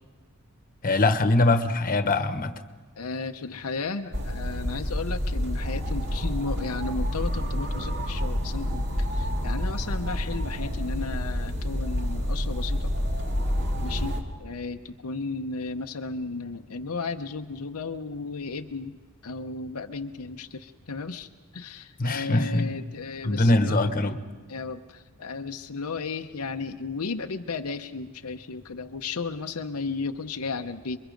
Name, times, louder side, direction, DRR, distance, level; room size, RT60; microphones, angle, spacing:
voice 1, 0.8-2.5 22.0-22.7 23.2-24.2, left 2 dB, 40° left, 8 dB, 1.2 m, -22 dB
voice 2, 3.0-8.8 9.2-12.9 13.8-18.9 19.2-21.3 21.5-23.9 24.5-24.8 25.2-31.0, left 4 dB, 80° left, 5 dB, 0.8 m, -34 dB
sound 1, 4.1-14.2, equal, 50° right, 2.2 m, -28 dB
28.5 x 22.5 x 5.3 m, 1.4 s
head